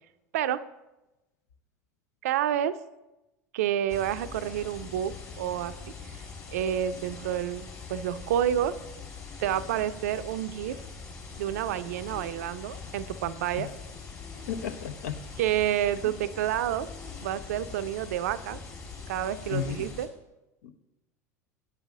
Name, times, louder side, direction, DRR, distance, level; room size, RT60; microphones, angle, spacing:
voice 1, 0.3-0.6 2.2-2.8 3.5-5.8 6.1-6.2 6.5-7.6 7.9-8.8 9.4-10.8 11.4-13.7 15.4-16.9 17.2-18.6 19.1-20.1, right 11 dB, 70° right, 14 dB, 0.4 m, -29 dB
sound 1, 3.9-20.1, left 4 dB, 35° left, 3.5 m, -43 dB
voice 2, 14.5-15.2 19.5-19.9 20.6-20.7, left 7 dB, 70° left, 9 dB, 0.7 m, -33 dB
8.0 x 5.5 x 6.1 m, 1.0 s
figure-of-eight pair, 75°, 9 cm